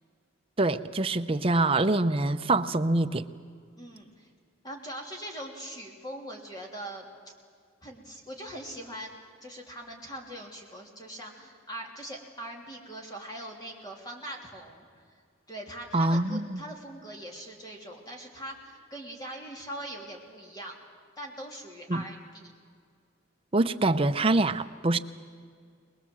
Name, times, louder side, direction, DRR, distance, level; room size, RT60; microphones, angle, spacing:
voice 1, 0.6-3.2 15.9-16.6 21.9-22.0 23.5-25.0, right 2 dB, 25° right, 9 dB, 0.6 m, -25 dB
voice 2, 3.8-4.3 4.6-7.1 7.8-14.9 15.5-20.8 21.2-22.5, right 1 dB, 20° left, 0 dB, 3.1 m, -42 dB
22.5 x 21.0 x 7.8 m, 2.1 s
head